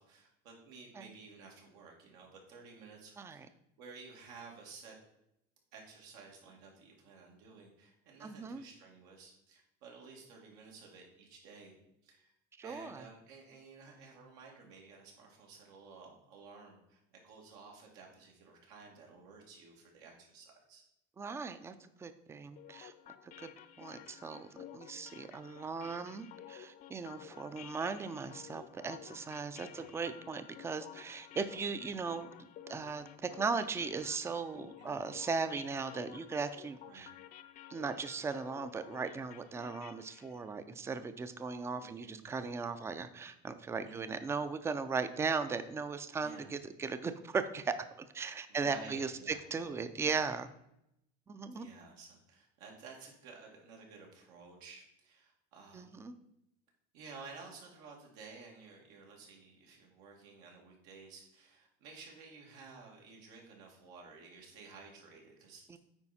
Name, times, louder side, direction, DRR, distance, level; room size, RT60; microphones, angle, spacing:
voice 1, 0.0-5.0 5.7-11.8 12.0-12.3 12.6-20.8 29.6-30.0 34.8-35.0 36.9-37.1 41.5-42.3 43.8-44.1 46.2-46.5 48.5-49.7 51.5-56.1 56.9-65.8, right 4 dB, 90° right, 0 dB, 2.2 m, -54 dB
voice 2, 8.2-8.6 12.6-13.0 21.2-22.9 23.4-23.5 23.8-37.1 37.7-50.5 51.3-51.7 55.7-56.1 65.7-65.8, right 5 dB, 15° right, 11 dB, 0.4 m, -38 dB
sound 1, 22.6-40.4, left 11 dB, 40° left, 0.5 m, -53 dB
8.8 x 4.8 x 4.2 m, 0.80 s
cardioid pair, 135°, 20 cm